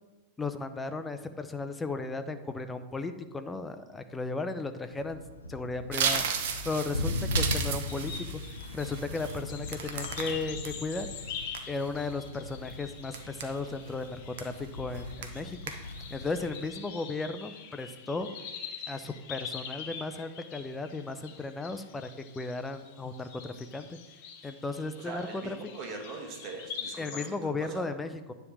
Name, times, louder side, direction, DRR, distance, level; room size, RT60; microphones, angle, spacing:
voice 1, 0.4-5.2 5.5-8.4 8.7-11.1 11.7-15.6 16.1-18.3 18.9-22.1 22.3-24.0 24.4-25.6 27.0-28.3, left 3 dB, 10° left, 9 dB, 0.6 m, -35 dB
Thunder, 4.9-16.5, left 2 dB, 90° left, 0.7 m, -38 dB
sound 1, 5.9-10.7 11.2-12.0 12.5-12.7 13.1-13.9 14.4-14.7 14.9-15.4 15.7-16.1 16.4-16.7, right 7 dB, 55° right, 1.0 m, -34 dB
sound 2, 7.9-27.3, left 7 dB, 50° left, 1.0 m, -44 dB
voice 2, 25.0-27.8, right 3 dB, 35° right, 2 dB, 1.8 m, -41 dB
9.7 x 3.5 x 6.2 m, 1.2 s
figure-of-eight pair, 95°, 0 cm